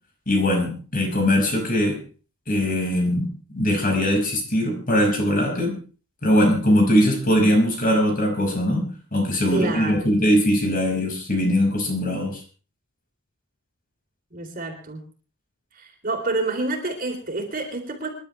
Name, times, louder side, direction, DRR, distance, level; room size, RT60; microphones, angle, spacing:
voice 1, 0.3-2.0 2.5-5.8 6.2-12.4, equal, 40° left, 2 dB, 5.5 m, -21 dB
voice 2, 9.5-10.1 14.3-15.0 15.8-18.1, right 2 dB, 40° right, 3 dB, 3.6 m, -28 dB
27.0 x 11.5 x 3.3 m, 0.37 s
head